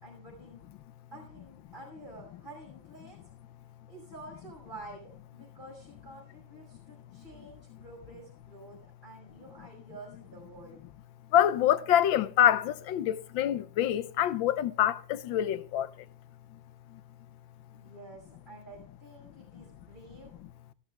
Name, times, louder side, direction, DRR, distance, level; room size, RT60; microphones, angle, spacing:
voice 1, 0.0-0.6 1.1-3.2 3.9-10.8 17.7-20.3, right 2 dB, 25° right, 5.2 m, -49 dB
voice 2, 11.3-15.9, left 11 dB, 80° left, 1.5 m, -26 dB
15.5 x 12.0 x 3.4 m
omnidirectional pair, 2.1 m